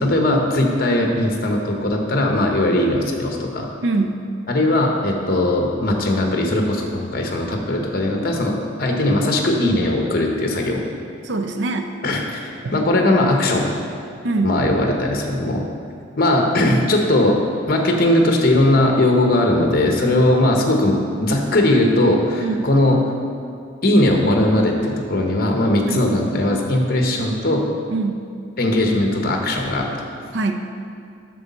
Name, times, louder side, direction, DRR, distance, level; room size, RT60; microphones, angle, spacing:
voice 1, 0.0-3.7 4.5-10.8 12.0-13.7 14.4-15.6 16.2-17.4 17.7-23.0 23.8-27.6 28.6-29.9, left 1 dB, 50° left, 2 dB, 0.9 m, -19 dB
voice 2, 3.8-4.2 11.2-11.9 12.6-12.7 14.2-14.6 22.4-22.7 25.9-26.1 27.9-28.3 30.3-30.5, right 3 dB, 60° right, 5 dB, 0.5 m, -23 dB
7.9 x 6.2 x 4.1 m, 2.3 s
head